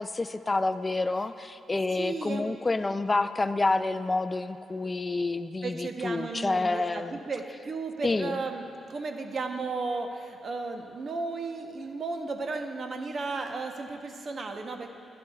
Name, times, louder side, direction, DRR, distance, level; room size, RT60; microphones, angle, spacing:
voice 1, 0.0-7.2 8.0-8.4, left 3 dB, 25° left, 11 dB, 0.4 m, -28 dB
voice 2, 2.0-2.6 5.6-14.9, right 3 dB, 50° right, 5 dB, 0.8 m, -34 dB
15.0 x 11.0 x 2.3 m, 2.9 s
cardioid pair, 85°, 0 cm